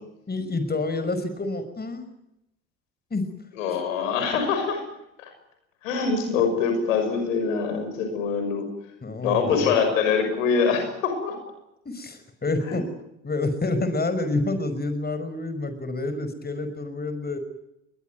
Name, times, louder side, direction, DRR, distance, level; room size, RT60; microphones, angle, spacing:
voice 1, 0.3-2.1 3.1-3.2 9.0-9.7 11.9-12.8 13.2-17.4, left 2 dB, 25° left, 10 dB, 5.6 m, -28 dB
voice 2, 3.6-4.8 5.2-5.3 5.8-8.7 9.2-11.4 12.7-12.8, left 5 dB, 80° left, 6 dB, 6.1 m, -24 dB
22.0 x 21.5 x 9.4 m, 0.85 s
hypercardioid pair, 60°, 38 cm